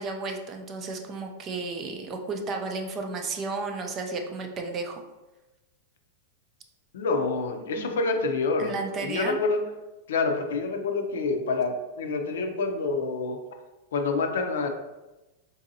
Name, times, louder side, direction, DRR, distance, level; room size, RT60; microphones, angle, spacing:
voice 1, 0.0-5.0 7.8-8.0 8.6-9.4, right 3 dB, 25° right, 4 dB, 0.4 m, -33 dB
voice 2, 6.9-9.6 10.1-13.4 13.9-14.7, left 3 dB, 90° left, 5 dB, 0.5 m, -27 dB
3.9 x 2.6 x 2.6 m, 1.1 s
supercardioid pair, 155°, 0 cm